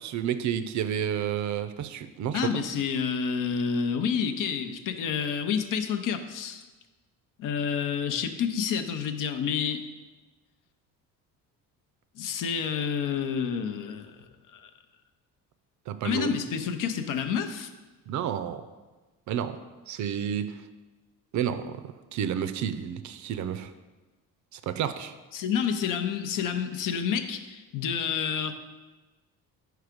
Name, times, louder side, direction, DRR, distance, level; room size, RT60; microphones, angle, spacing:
voice 1, 0.0-2.6 15.9-16.3 18.1-18.6 19.3-19.6 19.9-20.6 21.3-23.7 24.5-25.1, right 9 dB, 55° right, 11 dB, 0.5 m, -30 dB
voice 2, 2.3-6.7 7.4-9.8 12.2-14.2 14.5-14.7 16.0-17.7 25.3-28.5, left 7 dB, 65° left, 7 dB, 0.6 m, -29 dB
4.7 x 4.6 x 5.0 m, 1.2 s
cardioid pair, 90°, 35 cm